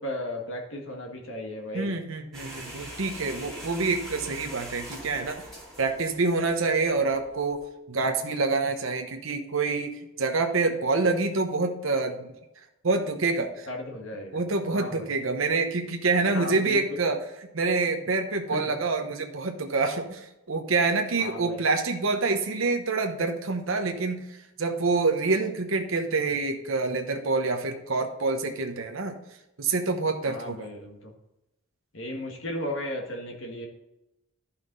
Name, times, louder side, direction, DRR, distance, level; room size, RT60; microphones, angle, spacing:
voice 1, 0.0-1.9 13.7-14.4 14.7-15.1 16.3-16.8 18.5-18.6 21.2-21.6 30.2-31.0 31.9-33.7, left 1 dB, 70° left, 2 dB, 1.8 m, -35 dB
voice 2, 1.7-5.4 5.8-12.2 12.8-13.7 14.3-29.2 29.6-30.7, right 3 dB, 75° right, 5 dB, 0.9 m, -27 dB
sound 1, 2.3-7.6, right 1 dB, ahead, 2.5 m, -43 dB
11.5 x 5.7 x 3.9 m, 0.92 s
head